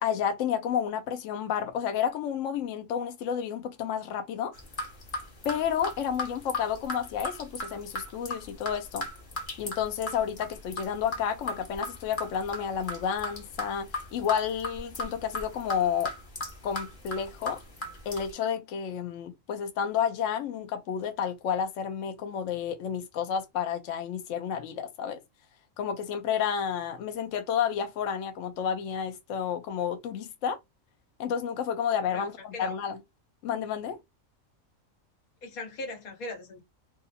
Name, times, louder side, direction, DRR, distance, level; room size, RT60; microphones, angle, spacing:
voice 1, 0.0-4.5 5.4-9.1 9.6-16.1 16.6-17.6 18.1-25.2 25.8-30.6 31.2-33.0 33.4-34.0, left 8 dB, 70° left, 0.9 m, -31 dB
sound 1, 4.5-18.3, left 2 dB, 40° left, 1.1 m, -38 dB
voice 2, 35.4-36.6, left 2 dB, 90° left, 1.6 m, -38 dB
2.7 x 2.5 x 4.0 m
omnidirectional pair, 1.4 m